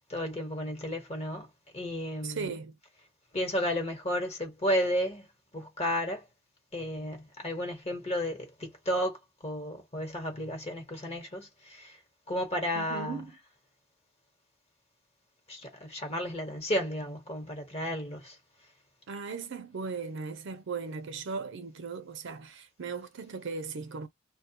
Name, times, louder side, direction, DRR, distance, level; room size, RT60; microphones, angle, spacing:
voice 1, 0.1-1.5 1.7-2.5 3.3-5.3 5.5-6.2 6.7-9.2 9.4-11.9 12.3-13.2 15.5-18.3, equal, 30° left, 1.1 m, -32 dB
voice 2, 2.2-2.8 12.7-13.3 19.1-24.1, right 5 dB, 60° right, 0.5 m, -37 dB
2.3 x 2.2 x 2.8 m
head